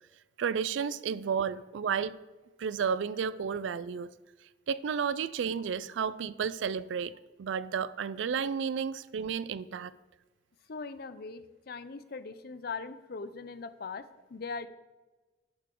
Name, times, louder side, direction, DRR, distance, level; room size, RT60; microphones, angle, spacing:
voice 1, 0.4-2.2 2.6-4.1 4.7-9.9, right 6 dB, 85° right, 0.4 m, -32 dB
voice 2, 10.7-14.7, left 4 dB, 55° left, 0.5 m, -40 dB
11.0 x 6.8 x 3.7 m
head